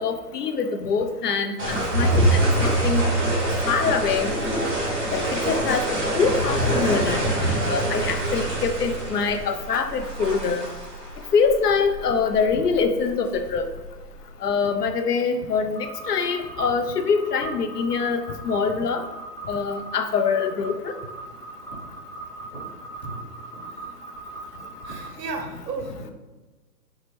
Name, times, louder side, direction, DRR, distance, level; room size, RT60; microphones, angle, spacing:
voice 1, 0.0-3.0 3.6-4.3 5.1-7.2 7.6-10.7 11.3-13.7 14.4-19.0 19.5-20.9, left 5 dB, 70° left, 7 dB, 0.5 m, -24 dB
sound 1, 1.6-14.2, right 1 dB, 45° right, 1.3 m, -25 dB
sound 2, 15.7-25.1, right 3 dB, 10° left, 1.0 m, -39 dB
voice 2, 23.0-23.9 24.8-26.1, right 3 dB, 80° right, 4 dB, 0.8 m, -35 dB
4.3 x 2.1 x 3.3 m, 1.2 s
hypercardioid pair, 175°, 49 cm